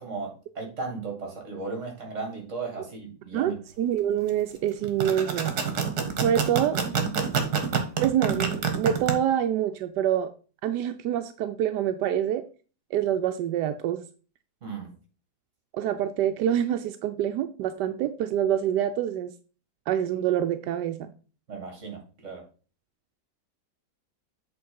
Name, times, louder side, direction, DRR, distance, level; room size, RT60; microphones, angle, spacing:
voice 1, 0.0-3.5 14.6-14.9 21.5-22.4, right 4 dB, 45° right, 1 dB, 2.5 m, -36 dB
voice 2, 3.3-5.5 6.2-6.8 8.0-10.3 10.6-12.4 12.9-14.0 15.7-19.3 19.9-21.1, right 10 dB, 85° right, 8 dB, 1.2 m, -26 dB
sound 1, 4.8-9.1, right 6 dB, 70° right, 1.7 m, -26 dB
7.8 x 3.9 x 5.4 m, 0.38 s
omnidirectional pair, 1.8 m